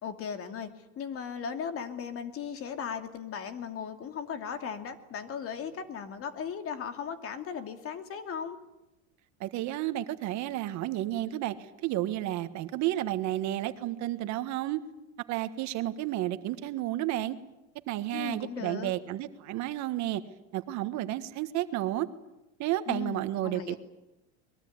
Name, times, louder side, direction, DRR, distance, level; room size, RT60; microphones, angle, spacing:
voice 1, 0.0-8.6 18.1-18.9 22.9-23.8, left 7 dB, 40° left, 8 dB, 2.7 m, -37 dB
voice 2, 9.4-14.8 15.3-17.4 17.9-20.2 20.5-22.1 22.6-23.8, right 14 dB, 55° right, 11 dB, 1.6 m, -31 dB
22.5 x 22.0 x 9.6 m, 0.95 s
supercardioid pair, 125°, 34 cm